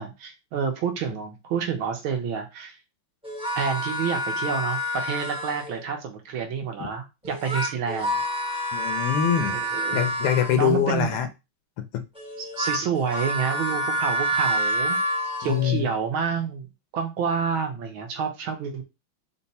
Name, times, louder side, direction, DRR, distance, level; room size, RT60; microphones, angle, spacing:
voice 1, 0.0-2.8 3.5-8.2 9.5-10.1 10.6-11.2 12.4-15.0 15.4-16.7 16.9-18.8, right 6 dB, 75° right, 4 dB, 1.6 m, -29 dB
sound 1, 3.2-5.8 7.2-10.9 12.1-15.8, equal, 5° right, 0.4 m, -28 dB
voice 2, 8.7-9.6 9.9-11.3 11.8-12.0 15.4-15.9, left 9 dB, 80° left, 8 dB, 1.6 m, -24 dB
4.6 x 2.2 x 4.0 m, 0.25 s
omnidirectional pair, 2.4 m